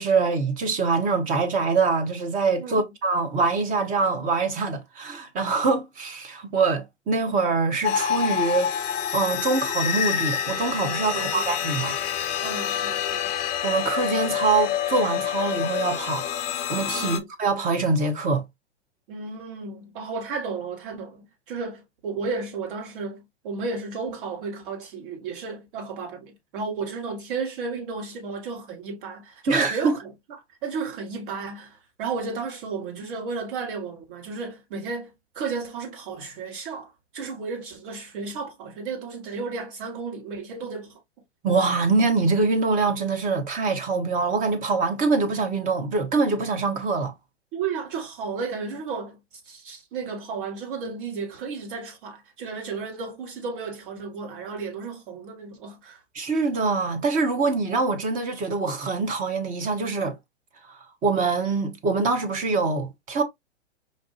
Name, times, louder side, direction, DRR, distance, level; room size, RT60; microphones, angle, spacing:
voice 1, 0.0-8.7 9.1-12.0 13.6-16.2 16.7-18.4 29.5-30.0 41.4-47.1 56.1-60.2 61.0-63.2, right 4 dB, 25° right, 0.9 m, -24 dB
sound 1, 7.8-17.2, left 9 dB, 20° left, 0.5 m, -27 dB
voice 2, 11.1-11.5 12.4-13.3 17.0-17.3 19.1-30.1 30.6-41.0 47.5-49.2 49.5-56.0, right 4 dB, 50° right, 1.9 m, -33 dB
5.1 x 2.5 x 2.5 m
figure-of-eight pair, 110°, 34 cm